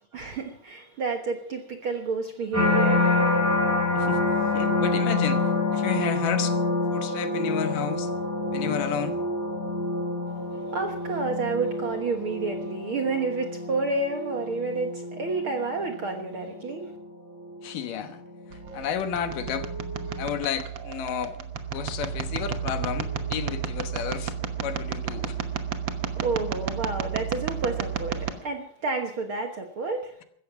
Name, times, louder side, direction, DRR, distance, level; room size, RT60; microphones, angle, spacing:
voice 1, 0.1-3.2 10.7-16.9 25.3-25.5 26.2-30.2, right 3 dB, 55° right, 4 dB, 1.6 m, -30 dB
sound 1, 2.5-17.7 18.2-18.7, left 2 dB, 5° right, 7.9 m, -27 dB
voice 2, 4.5-6.6 6.9-8.1 8.5-9.2 17.6-18.2 18.7-19.7 20.2-21.4 21.7-24.3 24.6-25.4, left 8 dB, 75° left, 9 dB, 2.8 m, -31 dB
sound 2, 18.5-28.3, right 7 dB, 75° right, 1.0 m, -32 dB
16.0 x 14.0 x 6.0 m, 0.66 s
omnidirectional pair, 4.0 m